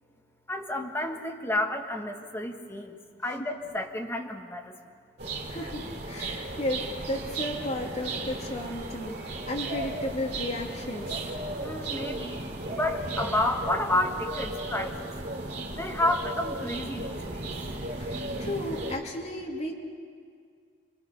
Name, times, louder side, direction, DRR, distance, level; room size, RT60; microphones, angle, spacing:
voice 1, 0.5-2.9 3.2-4.7 11.6-14.9 15.8-17.4, left 1 dB, 15° left, 2 dB, 1.6 m, -30 dB
sound 1, 5.2-19.0, right 2 dB, 65° right, 2.7 m, -35 dB
voice 2, 5.5-11.3 18.0-19.8, left 1 dB, 40° left, -1 dB, 2.6 m, -34 dB
28.0 x 22.0 x 5.8 m, 2.1 s
head